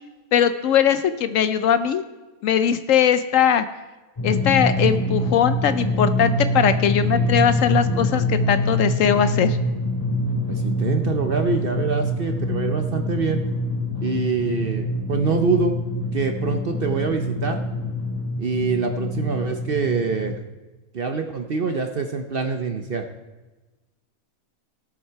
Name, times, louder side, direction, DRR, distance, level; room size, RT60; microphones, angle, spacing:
voice 1, 0.3-2.0 2.4-3.7 4.2-9.6, left 9 dB, 70° left, 11 dB, 0.9 m, -20 dB
Drum, 4.2-20.3, equal, 20° left, 3.6 m, -25 dB
voice 2, 10.5-13.4 14.0-15.8 16.1-17.6 18.4-20.4 20.9-23.0, right 4 dB, 50° right, 5 dB, 0.8 m, -25 dB
17.0 x 7.3 x 4.6 m, 1.2 s
omnidirectional pair, 1.6 m